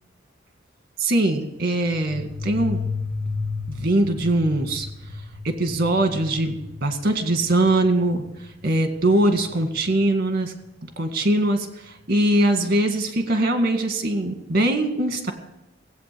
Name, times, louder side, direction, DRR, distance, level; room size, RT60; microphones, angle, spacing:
voice 1, 1.0-2.8 3.7-4.9 5.4-10.5 11.0-15.3, right 1 dB, 50° right, 6 dB, 2.0 m, -22 dB
sound 1, 1.8-10.2, left 4 dB, 75° left, 5.5 m, -34 dB
18.0 x 8.6 x 6.9 m, 0.89 s
head